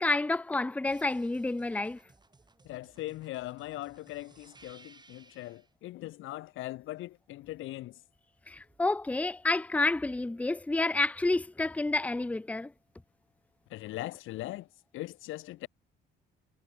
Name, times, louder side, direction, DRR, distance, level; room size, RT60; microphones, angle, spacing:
voice 1, 0.0-2.0 8.5-12.7, left 2 dB, 5° left, 0.5 m, -29 dB
sound 1, 0.9-5.7 8.5-9.5, right 3 dB, 20° right, 2.5 m, -60 dB
voice 2, 2.6-8.0 13.7-14.7 14.9-15.7, left 16 dB, 85° left, 0.7 m, -40 dB
cardioid pair, 90°, 20 cm